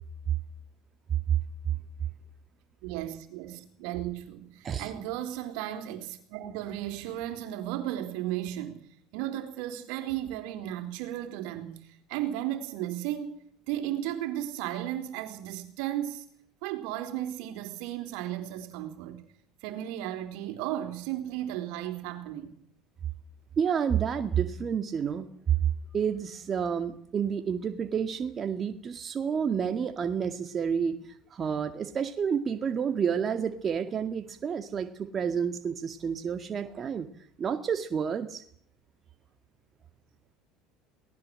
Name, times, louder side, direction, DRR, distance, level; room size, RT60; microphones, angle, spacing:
voice 1, 2.8-8.9 9.1-16.2 16.6-19.2 19.6-22.6, right 12 dB, 75° right, 3.9 m, -35 dB
voice 2, 23.6-25.3 25.9-37.1 37.4-38.4, right 7 dB, 40° right, 2.0 m, -30 dB
22.5 x 18.5 x 7.8 m
hypercardioid pair, 85°, 0 cm